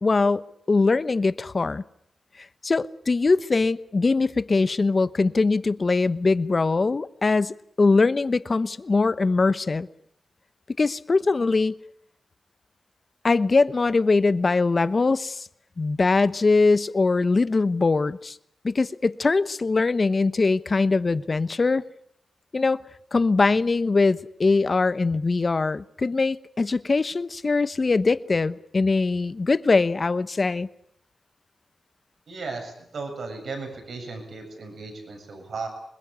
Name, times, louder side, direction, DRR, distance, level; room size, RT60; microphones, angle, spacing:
voice 1, 0.0-1.8 2.6-9.9 10.8-11.7 13.2-15.5 15.8-18.4 18.6-21.8 22.5-22.8 23.1-30.7, left 3 dB, 45° left, 1.0 m, -22 dB
voice 2, 32.3-35.7, right 4 dB, 75° right, 7.6 m, -35 dB
25.5 x 21.5 x 8.3 m
cardioid pair, 70°, 0 cm